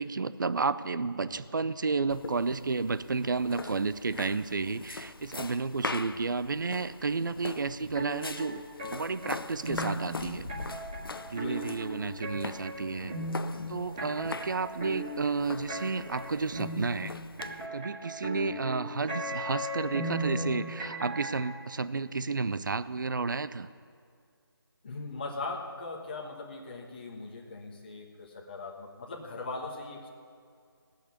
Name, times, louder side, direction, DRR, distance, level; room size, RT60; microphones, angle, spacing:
voice 1, 0.0-8.6 8.9-10.5 11.2-13.1 13.7-17.2 17.7-23.7, right 4 dB, 50° right, 14 dB, 0.5 m, -31 dB
sound 1, 2.1-17.7, left 3 dB, 65° left, 0.6 m, -42 dB
sound 2, 8.0-21.5, right 1 dB, 15° right, 2.0 m, -37 dB
voice 2, 11.3-11.8 13.0-13.3 13.5-13.8 18.3-18.6 24.8-30.1, left 3 dB, 25° left, -2 dB, 1.3 m, -40 dB
18.0 x 6.5 x 8.4 m, 2.2 s
figure-of-eight pair, 170°, 13 cm